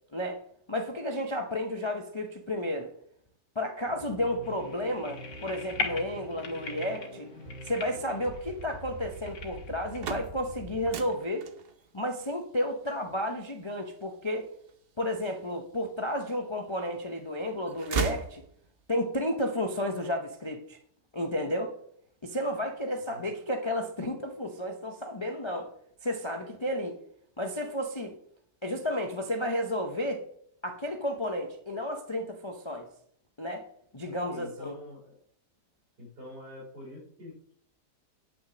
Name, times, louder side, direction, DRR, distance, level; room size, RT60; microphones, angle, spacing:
voice 1, 0.7-2.9 3.6-7.3 7.6-11.4 11.9-14.5 15.0-18.4 18.9-20.8 21.1-21.7 22.2-25.7 26.0-27.0 27.4-28.1 28.6-30.2 30.6-32.9 33.4-33.6 33.9-34.7, left 1 dB, 25° left, 2 dB, 0.6 m, -32 dB
sound 1, 3.9-11.0, right 1 dB, 25° right, 3.9 m, -45 dB
sound 2, 4.4-10.0, left 4 dB, 80° left, 2.1 m, -40 dB
sound 3, 9.8-15.7 16.2-17.1 17.4-19.0, right 5 dB, 50° right, 0.8 m, -37 dB
voice 2, 23.1-23.4 34.3-35.2 36.0-37.5, left 2 dB, 70° right, -3 dB, 5.8 m, -46 dB
9.6 x 6.3 x 6.1 m, 0.67 s
omnidirectional pair, 1.8 m